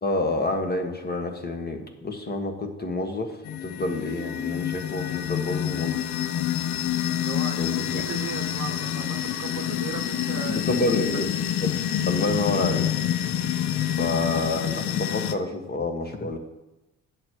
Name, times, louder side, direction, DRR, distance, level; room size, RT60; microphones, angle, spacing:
voice 1, 0.0-6.0 7.6-8.1 10.5-11.3 11.6-11.8 12.1-12.9 14.0-16.4, left 2 dB, 30° left, 5 dB, 1.4 m, -28 dB
sound 1, 3.4-15.3, left 10 dB, 70° left, 0.6 m, -27 dB
voice 2, 7.1-10.8 11.1-11.2 13.8-14.4, right 8 dB, 80° right, 6 dB, 1.0 m, -38 dB
9.6 x 6.4 x 4.5 m, 1.0 s
cardioid pair, 90°, 30 cm